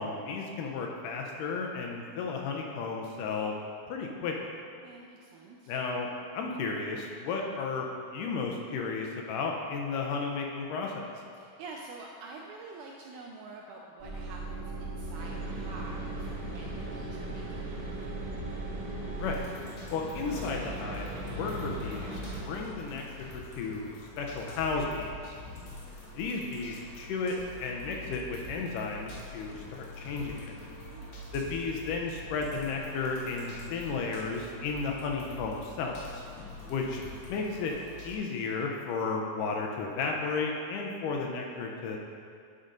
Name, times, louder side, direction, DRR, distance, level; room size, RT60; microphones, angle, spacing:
voice 1, 0.0-3.6 3.9-4.6 5.7-6.1 6.3-7.9 8.1-11.1 19.2-19.4 19.9-23.9 24.2-25.3 26.2-30.6 31.3-36.2 36.7-37.0 37.3-37.7 38.0-42.0, left 4 dB, 80° left, 0 dB, 2.1 m, -33 dB
voice 2, 4.8-5.8 11.4-18.1 25.4-26.0 30.7-31.3 36.4-37.0, right 3 dB, 80° right, -1 dB, 1.8 m, -48 dB
sound 1, 14.0-19.4, right 2 dB, 25° right, 1.3 m, -38 dB
sound 2, 15.1-22.4, right 1 dB, 65° right, 1.3 m, -40 dB
sound 3, 19.2-38.2, left 2 dB, 60° left, 1.9 m, -45 dB
9.6 x 5.1 x 3.8 m, 2.3 s
omnidirectional pair, 4.0 m